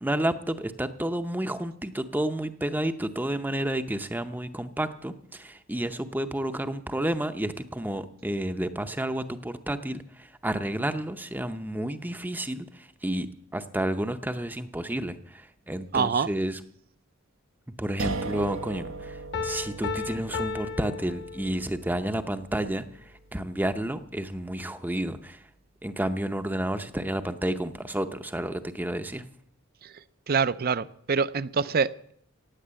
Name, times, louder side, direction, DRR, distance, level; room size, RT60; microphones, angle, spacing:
voice 1, 0.0-13.3 13.5-16.6 17.7-25.4 25.8-29.2, right 1 dB, 10° right, 9 dB, 0.7 m, -31 dB
voice 2, 15.9-16.3 30.3-32.1, right 5 dB, 45° right, 16 dB, 0.5 m, -25 dB
sound 1, 18.0-24.9, right 3 dB, 90° right, 1.2 m, -39 dB
Piano, 19.3-21.9, left 5 dB, 50° left, 1.2 m, -34 dB
17.0 x 9.2 x 7.6 m, 0.65 s
head